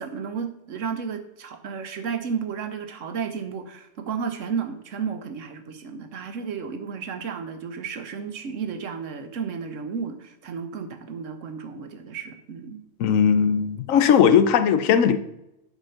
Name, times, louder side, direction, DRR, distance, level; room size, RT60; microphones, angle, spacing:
voice 1, 0.0-12.8, right 6 dB, 75° right, 1.2 m, -33 dB
voice 2, 13.0-15.2, left 7 dB, 85° left, 1.1 m, -18 dB
8.1 x 5.2 x 5.7 m
omnidirectional pair, 1.3 m